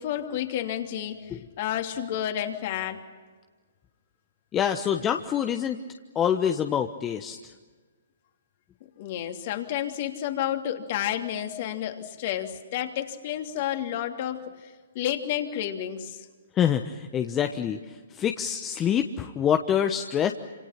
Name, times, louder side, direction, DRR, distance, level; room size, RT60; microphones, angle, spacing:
voice 1, 0.0-3.0 9.0-16.3, left 11 dB, 45° left, 4 dB, 3.0 m, -31 dB
voice 2, 4.5-5.8 6.1-7.4 16.5-20.3, left 9 dB, 20° left, 6 dB, 1.1 m, -26 dB
28.5 x 27.0 x 5.9 m, 1.4 s
figure-of-eight pair, 125°, 0 cm